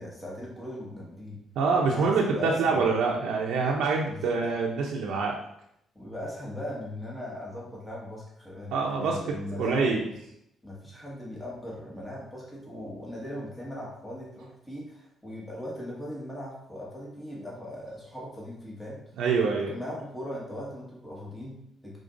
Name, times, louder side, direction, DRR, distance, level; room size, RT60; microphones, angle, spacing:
voice 1, 0.0-1.4 1.8-2.8 4.1-4.4 5.9-9.9 10.6-19.0 19.7-22.0, left 1 dB, 10° left, -5 dB, 1.6 m, -39 dB
voice 2, 1.6-5.3 8.7-10.0 19.2-19.7, right 4 dB, 80° right, -2 dB, 0.6 m, -26 dB
5.0 x 3.8 x 2.6 m, 0.77 s
cardioid pair, 90°, 0 cm